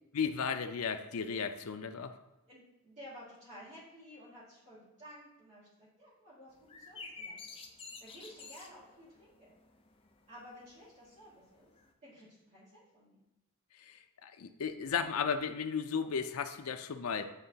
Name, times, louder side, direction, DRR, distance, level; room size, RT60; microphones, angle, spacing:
voice 1, 0.1-2.2 13.8-17.3, left 6 dB, 75° left, 8 dB, 0.5 m, -35 dB
voice 2, 2.5-7.4 8.0-9.5 10.3-11.7 12.0-13.2, equal, 35° right, -12 dB, 1.9 m, -53 dB
sound 1, 6.5-11.9, left 4 dB, 25° left, 0.6 m, -51 dB
10.5 x 3.8 x 2.8 m, 0.92 s
head